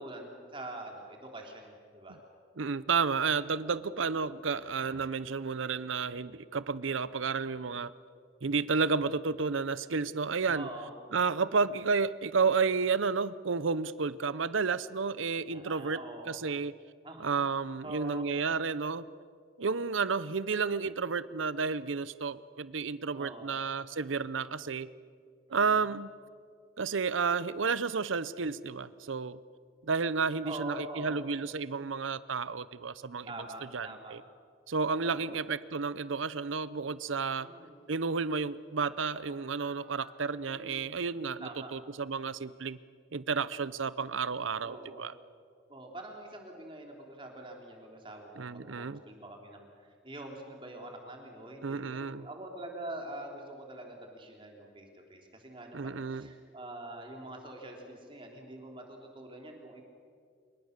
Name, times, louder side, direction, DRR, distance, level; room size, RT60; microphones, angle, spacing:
voice 1, 0.0-2.2 10.5-10.9 15.5-16.4 17.0-17.4 17.6-18.3 23.1-23.6 25.5-25.9 30.4-31.2 33.3-34.2 35.0-35.4 37.4-37.8 40.4-40.9 41.4-41.7 44.6-45.1 45.7-59.8, right 1 dB, 25° right, 2 dB, 3.4 m, -45 dB
voice 2, 2.6-7.9 8.4-10.7 11.1-16.0 16.3-16.7 17.2-19.0 19.6-24.9 25.5-26.1 26.8-29.4 29.8-33.3 33.7-34.2 34.7-37.5 37.9-42.8 43.1-45.1 48.4-49.0 51.6-52.3 55.7-56.3, right 5 dB, 90° right, 17 dB, 0.7 m, -31 dB
sound 1, 35.4-35.5 35.7-40.3, left 1 dB, 75° left, 6.0 m, -62 dB
27.0 x 23.5 x 6.7 m, 2.1 s
head